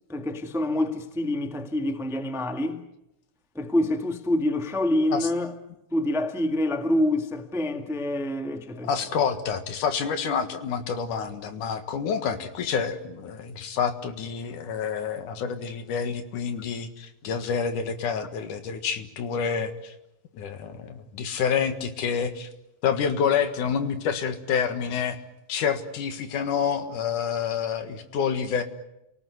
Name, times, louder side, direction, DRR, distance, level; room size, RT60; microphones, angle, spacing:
voice 1, 0.1-2.8 3.5-5.5 5.9-8.9, left 1 dB, ahead, 0.9 m, -26 dB
voice 2, 8.8-19.9 20.3-22.5 22.8-25.2 25.5-28.6, left 7 dB, 80° left, 3.2 m, -28 dB
29.5 x 19.0 x 9.6 m
omnidirectional pair, 3.6 m